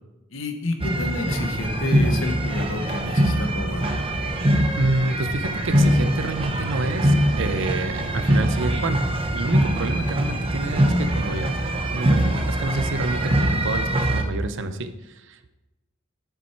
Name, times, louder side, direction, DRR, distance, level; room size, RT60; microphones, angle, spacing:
voice 1, 0.3-3.9, left 2 dB, 70° left, 5 dB, 1.1 m, -30 dB
sound 1, 0.8-14.2, right 1 dB, 30° right, 0.8 m, -23 dB
voice 2, 4.8-11.6 11.9-15.5, right 2 dB, 65° right, 9 dB, 0.7 m, -28 dB
7.5 x 6.9 x 4.5 m, 1.0 s
head